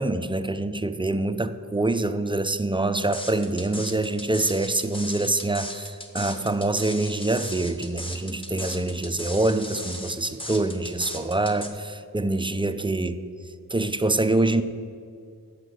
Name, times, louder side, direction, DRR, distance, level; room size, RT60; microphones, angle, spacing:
voice 1, 0.0-13.2 13.7-14.6, right 2 dB, 15° right, 11 dB, 0.4 m, -25 dB
sound 1, 3.1-11.7, left 1 dB, 15° left, 1.1 m, -37 dB
7.9 x 5.9 x 7.5 m, 2.2 s
wide cardioid pair, 70°, 37 cm